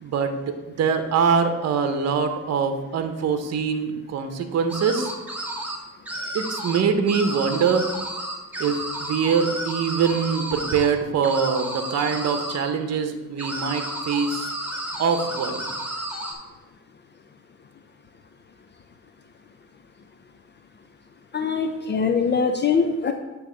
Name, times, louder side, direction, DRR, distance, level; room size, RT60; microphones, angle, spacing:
voice 1, 0.0-5.1 6.3-7.9 8.6-14.5 15.0-15.6, right 6 dB, 60° right, 7 dB, 0.9 m, -23 dB
sound 1, 4.7-5.8 6.1-6.8 7.1-10.9 11.2-12.6 13.4-16.3, right 1 dB, 5° right, 1.7 m, -32 dB
voice 2, 21.3-23.1, left 5 dB, 35° left, 6 dB, 0.5 m, -22 dB
8.7 x 3.1 x 6.2 m, 1.1 s
cardioid pair, 90°, 30 cm